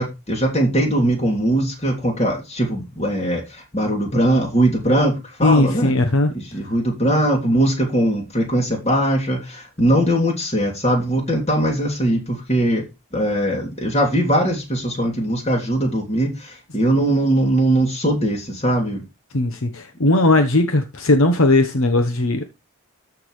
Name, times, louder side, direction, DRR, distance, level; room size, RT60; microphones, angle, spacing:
voice 1, 0.0-5.9 6.3-12.8 13.1-19.0, right 1 dB, 30° left, 2.8 m, -20 dB
voice 2, 5.4-6.3 19.3-22.4, left 2 dB, 65° left, 1.0 m, -17 dB
13.5 x 6.0 x 3.2 m
head